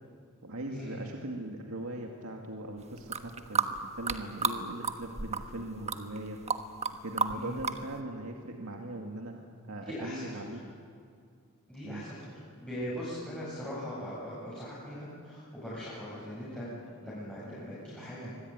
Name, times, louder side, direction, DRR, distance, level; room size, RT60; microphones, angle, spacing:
voice 1, 0.4-6.6 7.0-9.4 9.7-10.6 11.8-12.1, right 1 dB, 70° right, 1 dB, 2.3 m, -40 dB
sound 1, 3.0-4.6 4.8-5.6 5.9-6.9 7.2-7.8, right 5 dB, 30° right, 1.3 m, -31 dB
voice 2, 9.9-10.2 11.7-12.1 12.6-16.7 17.0-18.3, equal, 5° left, -9 dB, 8.0 m, -40 dB
25.0 x 22.0 x 9.5 m, 2.3 s
head